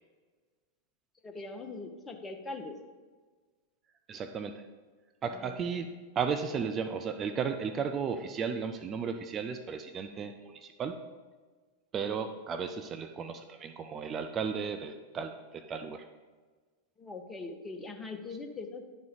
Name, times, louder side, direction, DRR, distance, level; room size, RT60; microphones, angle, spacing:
voice 1, 1.2-2.8 5.3-5.7 17.0-18.8, left 3 dB, 15° left, 5 dB, 0.8 m, -41 dB
voice 2, 4.1-4.6 5.2-5.9 6.2-11.0 11.9-16.1, right 6 dB, 25° right, 7 dB, 0.4 m, -34 dB
10.5 x 4.5 x 3.8 m, 1.4 s
figure-of-eight pair, 90°, 0 cm